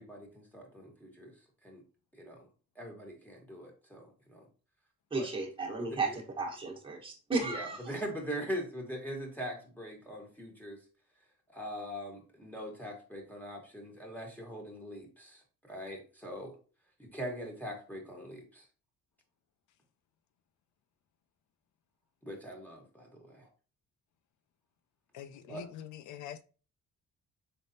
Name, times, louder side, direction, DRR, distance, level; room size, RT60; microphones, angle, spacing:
voice 1, 0.0-1.3 1.6-1.8 2.2-2.5 2.7-4.4 5.1-5.3 5.8-6.2 7.4-10.8 11.5-16.6 17.0-18.6 22.2-23.5 25.5-25.6, equal, 5° left, 1.3 m, -42 dB
voice 2, 5.1-7.9, right 3 dB, 15° right, 1.2 m, -34 dB
voice 3, 25.1-26.4, left 10 dB, 75° left, 0.5 m, -44 dB
4.0 x 3.5 x 2.7 m
cardioid pair, 90°, 30 cm